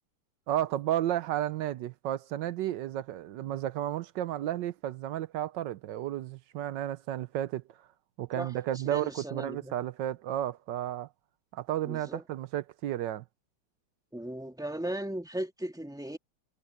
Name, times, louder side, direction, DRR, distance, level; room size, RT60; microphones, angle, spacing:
voice 1, 0.5-7.6 8.2-11.1 11.5-13.2, right 12 dB, 70° right, 1.2 m, -32 dB
voice 2, 8.8-9.7 11.8-12.2 14.1-16.2, right 1 dB, ahead, 2.3 m, -37 dB
omnidirectional pair, 2.3 m